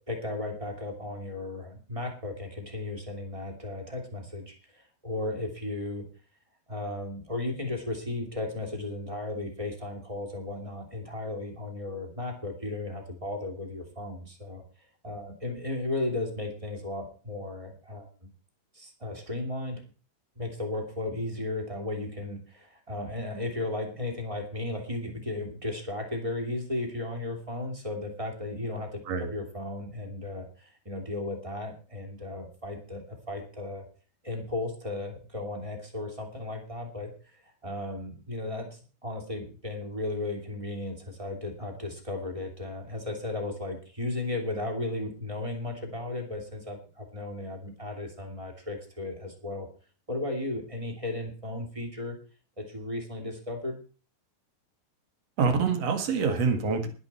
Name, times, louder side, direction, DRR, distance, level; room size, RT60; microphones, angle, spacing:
voice 1, 0.1-6.0 6.7-14.6 15.0-18.1 18.7-19.8 20.3-33.9 34.2-49.7 50.1-52.2 52.6-53.8, left 2 dB, 15° right, 3 dB, 1.1 m, -35 dB
voice 2, 55.4-56.9, right 5 dB, 65° right, 6 dB, 1.5 m, -26 dB
21.0 x 8.0 x 4.3 m, 0.37 s
omnidirectional pair, 5.9 m